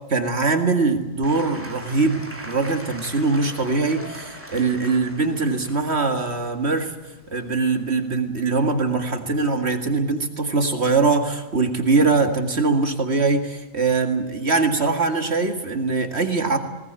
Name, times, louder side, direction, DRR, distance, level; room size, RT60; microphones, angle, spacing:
voice 1, 0.1-6.9 7.3-16.6, right 3 dB, 50° right, 6 dB, 2.3 m, -22 dB
Applause / Crowd, 1.2-7.5, equal, 10° right, 2.8 m, -40 dB
20.0 x 20.0 x 9.0 m, 1.1 s
omnidirectional pair, 1.4 m